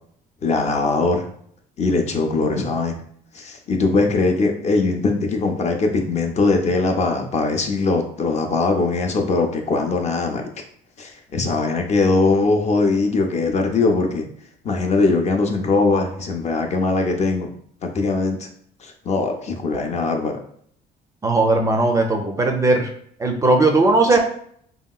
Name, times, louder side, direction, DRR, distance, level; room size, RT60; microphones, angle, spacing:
voice 1, 0.4-1.3 1.8-3.0 3.3-10.5 11.0-14.3 14.6-17.5 17.8-18.5 18.8-20.4 24.1-24.2, left 3 dB, 40° left, 3 dB, 0.5 m, -21 dB
voice 2, 21.2-22.9 23.2-24.2, right 2 dB, 20° right, 3 dB, 0.4 m, -17 dB
2.9 x 2.8 x 2.3 m, 0.64 s
cardioid pair, 110°, 17 cm